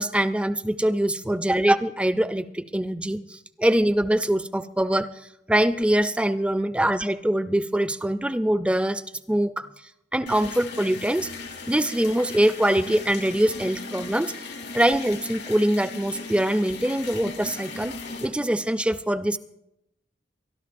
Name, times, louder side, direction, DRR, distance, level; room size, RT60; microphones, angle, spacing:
voice 1, 0.0-5.1 5.5-9.0 9.3-9.7 10.1-11.3 11.7-14.3 14.7-17.9 18.2-19.4, right 1 dB, 5° right, 12 dB, 0.4 m, -23 dB
sound 1, 10.3-18.3, left 3 dB, 90° left, 2.8 m, -37 dB
24.0 x 12.5 x 2.6 m, 0.82 s
head